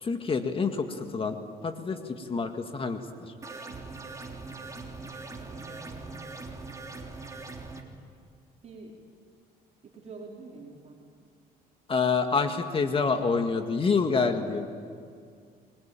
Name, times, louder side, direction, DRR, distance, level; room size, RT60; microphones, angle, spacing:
voice 1, 0.0-1.4 1.6-3.3 11.9-14.7, left 5 dB, 30° left, 6 dB, 2.0 m, -27 dB
sound 1, 3.4-7.8, right 3 dB, 20° right, 3.3 m, -41 dB
voice 2, 5.3-6.2 8.6-8.9 9.8-11.0, right 3 dB, 40° right, -2 dB, 4.8 m, -46 dB
27.5 x 22.0 x 9.2 m, 2.2 s
cardioid pair, 110°, 17 cm